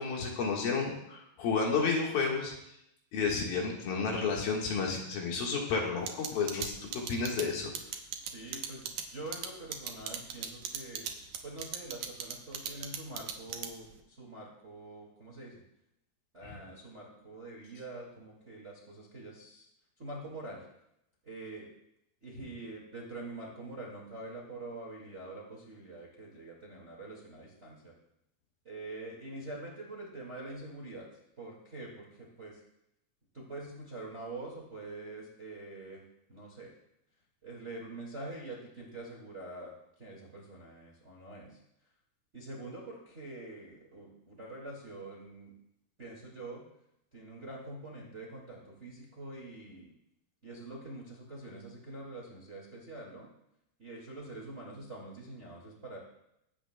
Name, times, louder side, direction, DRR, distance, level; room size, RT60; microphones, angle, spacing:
voice 1, 0.0-2.5 3.1-7.7 16.4-16.6, left 5 dB, 70° left, -1 dB, 3.3 m, -31 dB
sound 1, 6.1-14.0, right 9 dB, 75° right, 1.9 m, -37 dB
voice 2, 8.2-11.1 11.4-15.6 16.3-19.7 20.0-20.6 21.2-21.7 22.2-27.9 28.6-31.1 31.4-32.6 33.3-36.0 36.3-36.7 37.4-39.7 40.0-41.6 42.3-45.5 46.0-46.6 47.1-49.9 50.4-53.3 53.8-56.0, right 2 dB, 30° right, -4 dB, 1.4 m, -45 dB
21.0 x 9.0 x 2.2 m, 0.81 s
omnidirectional pair, 4.5 m